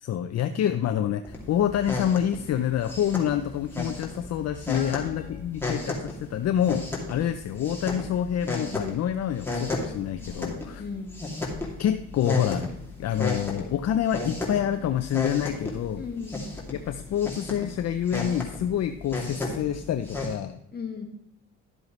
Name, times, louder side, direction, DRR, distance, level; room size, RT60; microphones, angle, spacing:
voice 1, 0.0-10.8 11.8-12.7 13.0-16.0 16.7-20.6, left 10 dB, 60° left, 9 dB, 0.6 m, -27 dB
sound 1, 1.2-20.3, left 2 dB, 5° left, 2.6 m, -34 dB
voice 2, 4.7-5.9 10.8-11.2 16.0-16.5 20.7-21.0, left 5 dB, 30° left, 1 dB, 2.0 m, -37 dB
12.0 x 7.7 x 3.2 m, 0.79 s
cardioid pair, 90°, 30 cm